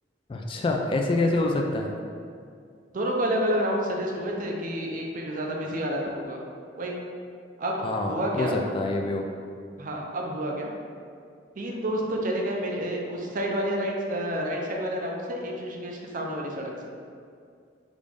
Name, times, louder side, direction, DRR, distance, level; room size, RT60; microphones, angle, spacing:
voice 1, 0.3-1.9 7.8-9.2, left 2 dB, 30° left, 2 dB, 0.3 m, -26 dB
voice 2, 2.9-6.4 6.8-7.0 7.6-8.6 9.8-10.7 11.6-16.9, equal, 50° right, 0 dB, 0.6 m, -29 dB
5.0 x 2.6 x 3.4 m, 2.3 s
head